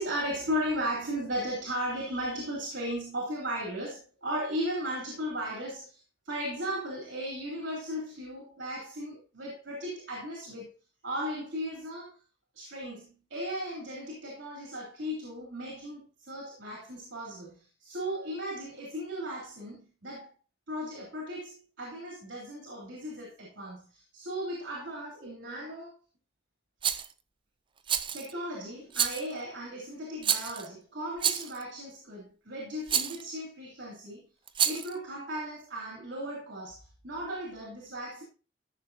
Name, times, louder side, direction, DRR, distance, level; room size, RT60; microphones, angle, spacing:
voice 1, 0.0-10.7 11.0-12.2 12.5-20.3 20.7-25.9 28.1-34.3 34.6-38.2, equal, 85° right, 3.3 m, -36 dB
Rattle, 26.8-27.1 27.9-28.3 28.9-29.3 30.2-30.7 31.2-31.6 32.9-33.2 34.5-34.9, right 8 dB, 25° right, 0.5 m, -29 dB
14.0 x 6.9 x 2.7 m
head